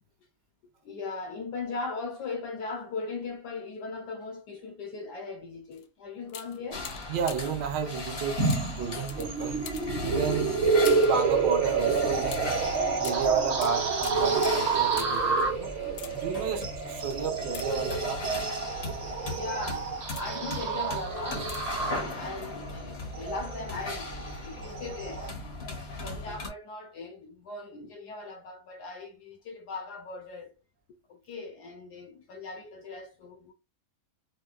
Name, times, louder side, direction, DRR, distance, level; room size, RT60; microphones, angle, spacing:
voice 1, 0.8-6.9 16.0-16.5 19.3-19.9 20.2-21.5 21.8-25.7 26.0-30.5 31.1-33.5, left 3 dB, 70° left, 1.0 m, -39 dB
sound 1, 5.7-5.9 6.3-7.7 8.5-11.2 12.3-15.3 15.8-16.5 17.4-18.3 18.9-19.2 19.7-20.5 21.4-21.9 22.1-22.2, left 9 dB, 85° left, 1.4 m, -45 dB
sound 2, 6.7-26.5, left 3 dB, 55° left, 0.7 m, -38 dB
voice 2, 7.1-9.7 10.0-10.6 11.0-12.6 13.0-15.7 16.1-18.4, right 6 dB, 70° right, 1.3 m, -32 dB
sound 3, 8.4-25.3, right 5 dB, 55° right, 0.8 m, -29 dB
4.4 x 2.2 x 2.3 m
omnidirectional pair, 2.2 m